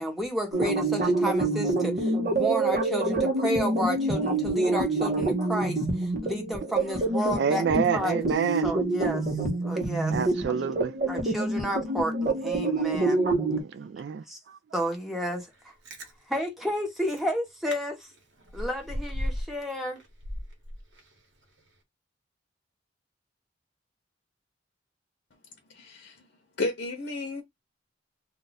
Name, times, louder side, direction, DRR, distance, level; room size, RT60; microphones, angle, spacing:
voice 1, 0.0-7.6 7.9-8.3 8.6-9.3 9.6-10.1 11.1-13.2 14.3-14.4 14.7-15.7 16.3-18.1 18.5-20.0, equal, ahead, 1.0 m, -31 dB
sound 1, 0.5-13.6, right 2 dB, 45° right, 0.8 m, -27 dB
voice 2, 7.4-8.7 10.1-11.0 13.5-14.6, right 7 dB, 60° right, 0.3 m, -28 dB
Chewing mastication, 15.6-16.1 16.7-16.8 17.1-17.3 17.7-17.8 18.1-19.6 20.0-21.2 21.6-21.7, equal, 90° right, 1.0 m, -35 dB
voice 3, 25.7-26.3 26.6-27.4, left 2 dB, 60° left, 0.8 m, -32 dB
2.5 x 2.3 x 3.9 m
head